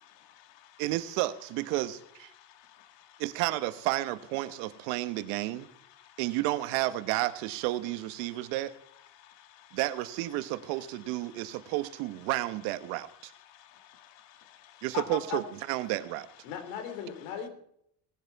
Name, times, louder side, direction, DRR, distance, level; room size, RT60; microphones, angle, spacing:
voice 1, 0.0-0.7 2.4-3.1 9.2-9.8 13.5-14.8, left 11 dB, 70° left, 9 dB, 1.8 m, -57 dB
voice 2, 0.8-2.3 3.2-5.7 6.2-8.7 9.7-13.3 14.8-16.3, right 16 dB, 90° right, 13 dB, 1.1 m, -31 dB
voice 3, 14.8-15.4 16.4-17.5, left 7 dB, 85° left, 9 dB, 3.1 m, -37 dB
18.5 x 11.0 x 4.6 m, 0.71 s
cardioid pair, 110°, 45 cm